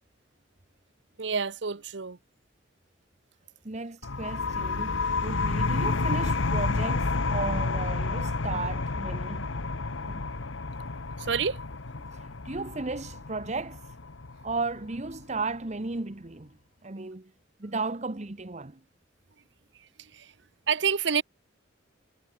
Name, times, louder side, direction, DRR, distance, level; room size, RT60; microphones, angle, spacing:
voice 1, 1.2-2.2 11.2-11.6 19.8-20.3 20.7-21.2, right 6 dB, 65° right, 0.9 m, -28 dB
voice 2, 3.6-9.5 10.0-10.2 12.1-13.8 14.4-17.3 17.6-18.8, right 3 dB, 35° right, 1.1 m, -35 dB
sound 1, 4.0-15.4, left 3 dB, 90° left, 1.2 m, -30 dB
head